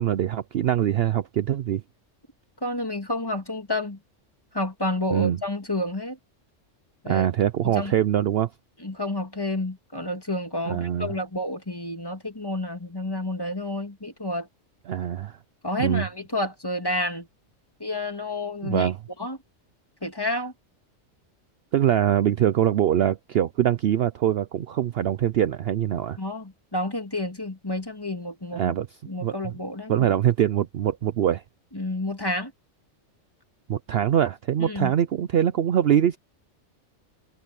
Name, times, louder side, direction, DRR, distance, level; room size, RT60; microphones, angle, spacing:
voice 1, 0.0-1.8 5.1-5.4 7.1-8.5 10.7-11.1 14.9-15.4 15.8-16.0 18.6-19.0 21.7-26.2 28.5-28.9 29.2-29.5 29.9-31.4 33.7-36.2, right 10 dB, 60° right, 0.7 m, -23 dB
voice 2, 2.6-4.0 4.5-6.2 7.0-7.3 7.6-7.9 8.8-14.5 15.6-17.3 17.8-18.9 19.2-19.4 20.0-20.5 26.2-28.7 29.1-30.1 31.7-32.5 34.6-34.9, left 1 dB, 20° left, 2.2 m, -30 dB
omnidirectional pair, 1.3 m